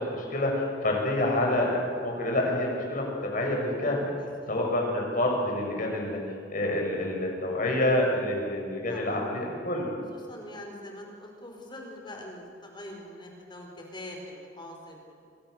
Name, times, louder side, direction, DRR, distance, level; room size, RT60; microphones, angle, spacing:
voice 1, 0.0-4.1 4.5-6.2 6.5-10.0, left 1 dB, 50° left, 0 dB, 6.9 m, -27 dB
voice 2, 4.2-4.5 8.9-9.3 10.1-15.1, left 1 dB, 25° left, 1 dB, 4.8 m, -44 dB
28.0 x 23.5 x 6.8 m, 2.2 s
head